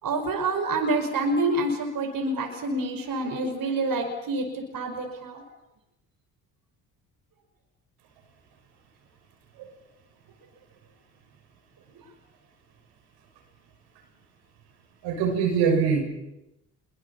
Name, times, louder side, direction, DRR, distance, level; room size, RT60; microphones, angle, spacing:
voice 1, 0.0-5.4 11.9-12.0, right 2 dB, 60° right, 4 dB, 5.5 m, -27 dB
voice 2, 15.0-16.0, right 6 dB, 85° right, 3 dB, 6.5 m, -23 dB
25.0 x 23.0 x 7.2 m, 0.93 s
supercardioid pair, 65°, 38 cm